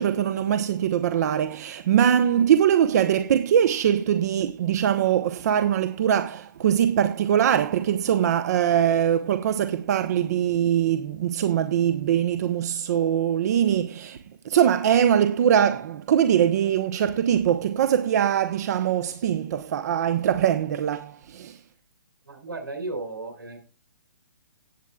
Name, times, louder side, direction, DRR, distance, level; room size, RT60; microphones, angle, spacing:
voice 1, 0.0-14.2 14.4-21.6, right 9 dB, 50° right, 0.9 m, -22 dB
voice 2, 22.3-23.6, right 2 dB, 85° right, 5.1 m, -34 dB
18.0 x 8.4 x 2.4 m
hypercardioid pair, 135°, 11 cm